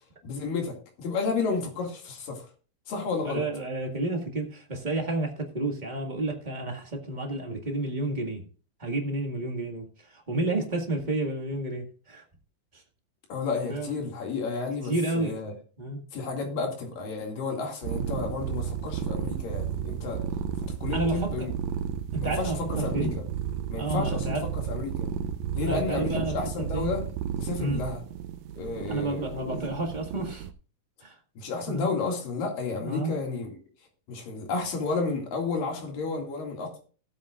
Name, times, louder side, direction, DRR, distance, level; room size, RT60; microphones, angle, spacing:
voice 1, 0.2-2.5 2.9-3.4 13.3-15.5 16.1-20.2 20.8-21.5 22.2-22.5 22.8-23.1 23.7-24.4 24.7-25.1 25.5-27.0 27.4-28.0 28.6-29.6 31.4-33.5 34.1-36.8, left 4 dB, 90° left, 2 dB, 4.0 m, -31 dB
voice 2, 3.2-8.4 8.8-12.2 12.7-12.8 13.7-14.0 14.8-15.4 15.8-16.0 20.9-21.5 22.1-23.2 23.7-24.5 25.6-26.9 27.6-27.8 28.9-30.5 31.0-31.2 31.7-31.9 32.8-33.2, right 2 dB, 25° right, 2 dB, 0.9 m, -31 dB
sound 1, 17.8-30.5, right 8 dB, 80° right, 1.7 m, -32 dB
18.0 x 8.1 x 2.5 m, 0.39 s
omnidirectional pair, 3.8 m